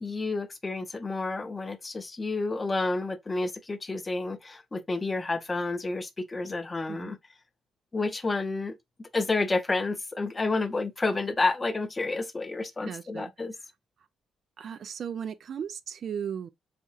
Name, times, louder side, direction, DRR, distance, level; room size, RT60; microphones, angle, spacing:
voice 1, 0.0-7.2 7.9-8.7 9.1-13.5, left 3 dB, 25° left, 0.6 m, -30 dB
voice 2, 12.8-13.3 14.6-16.5, right 8 dB, 55° right, 0.4 m, -36 dB
4.2 x 3.5 x 2.3 m
cardioid pair, 90°, 0 cm